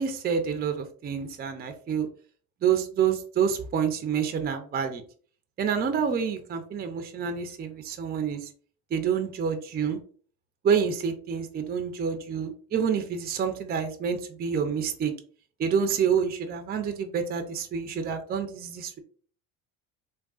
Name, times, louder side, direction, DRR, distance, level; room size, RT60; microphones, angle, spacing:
voice 1, 0.0-2.1 2.6-5.0 5.6-8.5 8.9-10.0 10.6-15.1 15.6-19.0, right 7 dB, 25° right, 6 dB, 0.5 m, -28 dB
3.5 x 2.3 x 2.4 m, 0.43 s
supercardioid pair, 100°, 36 cm